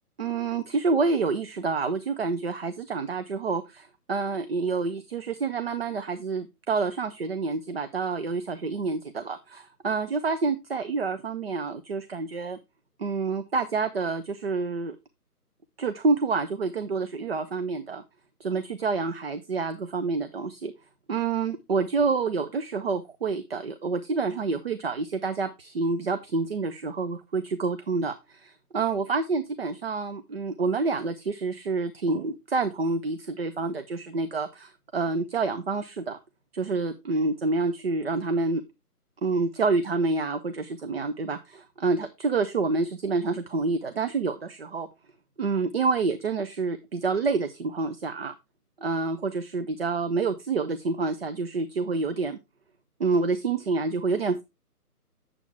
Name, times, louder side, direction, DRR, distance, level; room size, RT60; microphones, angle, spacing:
voice 1, 0.2-12.6 13.0-15.0 15.8-18.0 18.4-20.7 21.1-36.2 36.5-38.6 39.2-44.9 45.4-48.4 48.8-52.4 53.0-54.4, right 4 dB, 40° right, 10 dB, 0.5 m, -28 dB
7.3 x 7.0 x 3.3 m, 0.23 s
hypercardioid pair, 155°, 46 cm